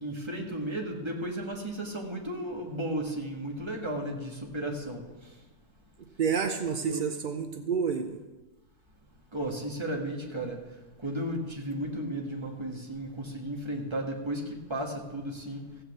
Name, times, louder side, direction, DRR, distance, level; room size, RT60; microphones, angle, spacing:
voice 1, 0.0-5.0 6.9-7.0 9.3-10.6 11.0-14.4 14.7-15.6, right 1 dB, 15° right, 1 dB, 1.6 m, -34 dB
voice 2, 6.2-8.2, right 6 dB, 65° right, 6 dB, 0.5 m, -29 dB
15.0 x 5.9 x 8.0 m, 1.2 s
omnidirectional pair, 1.8 m